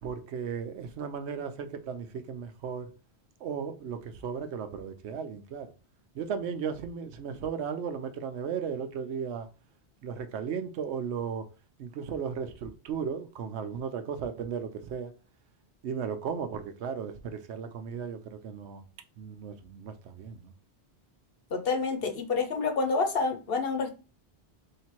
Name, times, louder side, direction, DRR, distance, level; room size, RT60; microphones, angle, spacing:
voice 1, 0.0-2.9 3.4-5.7 6.1-9.5 10.0-11.5 11.8-15.1 15.8-18.9 19.2-20.5, right 7 dB, 85° right, 0.9 m, -35 dB
voice 2, 21.5-24.0, left 4 dB, 60° left, 0.9 m, -28 dB
3.3 x 2.8 x 4.4 m
omnidirectional pair, 1.1 m